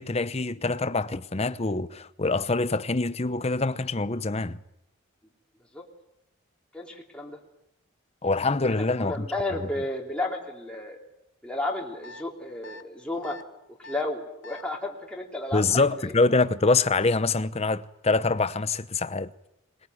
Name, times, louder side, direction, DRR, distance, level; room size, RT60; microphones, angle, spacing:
voice 1, 0.0-4.6 8.2-9.3 15.5-19.3, left 3 dB, 30° left, 0.8 m, -25 dB
voice 2, 6.7-7.4 8.6-11.0 11.4-13.4 13.8-16.1, left 2 dB, 5° left, 3.1 m, -33 dB
sound 1, 12.0-12.2 12.6-12.8 13.2-13.4 13.8-14.0 14.4-14.6, left 2 dB, 60° left, 1.5 m, -43 dB
22.5 x 21.5 x 9.3 m
head